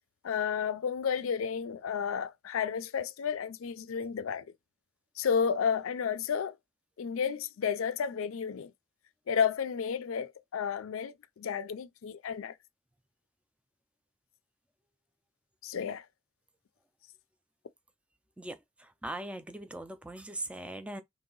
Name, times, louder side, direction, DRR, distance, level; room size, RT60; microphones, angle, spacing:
voice 1, 0.2-4.5 5.2-6.5 7.0-8.7 9.3-12.5 15.6-16.1, left 7 dB, 80° left, 0.4 m, -32 dB
voice 2, 18.4-21.0, right 1 dB, 5° right, 0.3 m, -40 dB
3.0 x 2.7 x 3.8 m
head